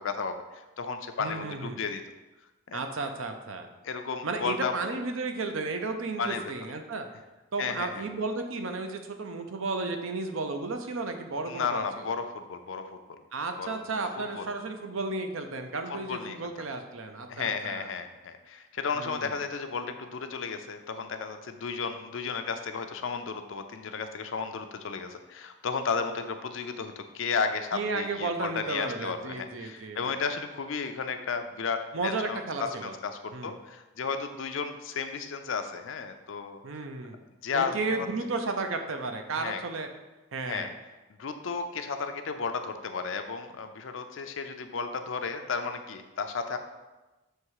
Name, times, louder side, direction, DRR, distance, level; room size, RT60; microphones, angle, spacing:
voice 1, 0.0-2.0 2.7-2.8 3.8-4.8 6.2-6.5 7.6-8.1 11.5-13.2 13.6-13.8 14.2-14.5 15.9-16.5 17.3-36.6 37.4-38.1 39.4-39.6 40.4-40.7 41.2-46.6, left 5 dB, 65° left, 7 dB, 0.5 m, -33 dB
voice 2, 1.2-1.8 2.7-3.7 4.2-7.1 7.5-11.8 13.3-17.9 19.0-19.3 27.7-30.2 31.9-32.9 33.3-33.5 36.6-37.2 37.5-39.9 40.3-40.7, right 3 dB, 70° right, 6 dB, 0.6 m, -33 dB
6.5 x 3.2 x 4.7 m, 1.1 s
head